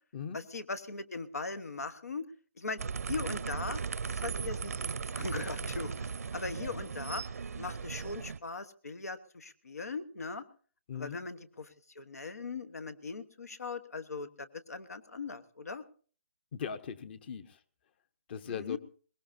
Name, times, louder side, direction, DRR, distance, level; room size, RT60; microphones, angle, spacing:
voice 1, 0.3-2.3 2.6-2.8 3.1-3.8 4.1-7.2 7.6-10.4 10.9-15.8 18.4-18.8, left 4 dB, 90° left, 13 dB, 1.3 m, -40 dB
sound 1, 2.8-8.4, right 5 dB, 80° right, 0.7 m, -37 dB
voice 2, 16.5-17.6 18.3-18.8, left 7 dB, 45° left, 13 dB, 1.0 m, -39 dB
22.0 x 20.0 x 2.7 m, 0.43 s
hypercardioid pair, 145°, 8 cm